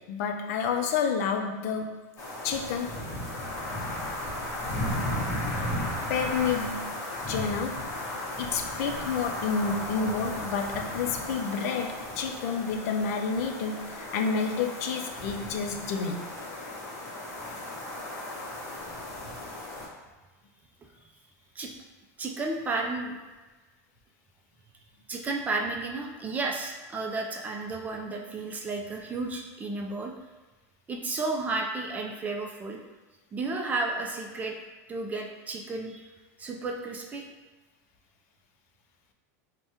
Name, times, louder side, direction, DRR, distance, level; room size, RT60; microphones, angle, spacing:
voice 1, 0.0-2.0 2.4-3.0 6.1-6.9 7.3-7.8 8.4-16.2, left 5 dB, 65° left, 4 dB, 0.4 m, -29 dB
sound 1, 2.2-19.9, left 1 dB, 35° left, 0.9 m, -35 dB
voice 2, 3.2-4.0 8.4-8.5 10.0-10.1 16.7-16.8 17.2-17.3 21.6-21.7 22.2-23.2 25.1-30.1 30.9-32.8 33.3-34.6 34.9-36.1 36.4-37.2, right 3 dB, 20° right, 1 dB, 0.3 m, -33 dB
3.4 x 2.2 x 2.7 m, 1.2 s
supercardioid pair, 130°, 9 cm